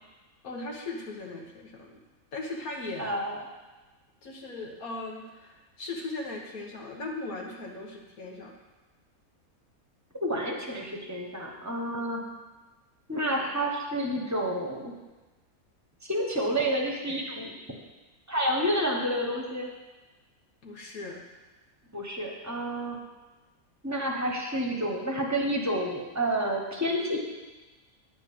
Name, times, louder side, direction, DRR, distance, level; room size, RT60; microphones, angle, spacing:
voice 1, 0.4-2.0 2.3-3.2 4.2-8.5 20.6-21.2, left 2 dB, 70° left, -1 dB, 1.8 m, -38 dB
voice 2, 3.0-3.4 10.2-12.2 13.1-14.9 16.0-17.5 18.3-19.7 21.9-23.0 23.8-27.2, equal, 10° right, 0 dB, 1.1 m, -29 dB
9.9 x 4.5 x 7.6 m, 1.2 s
omnidirectional pair, 1.6 m